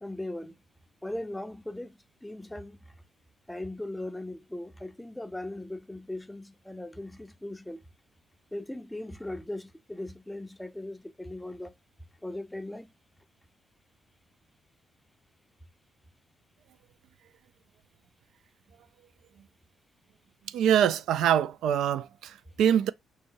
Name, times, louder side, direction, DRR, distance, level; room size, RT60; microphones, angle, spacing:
voice 1, 0.0-0.6 1.0-2.8 3.5-7.8 8.5-11.7 12.2-12.9, left 1 dB, 5° left, 0.5 m, -38 dB
voice 2, 20.5-22.9, right 9 dB, 80° right, 0.3 m, -24 dB
5.4 x 2.7 x 2.8 m
cardioid pair, 90°, 0 cm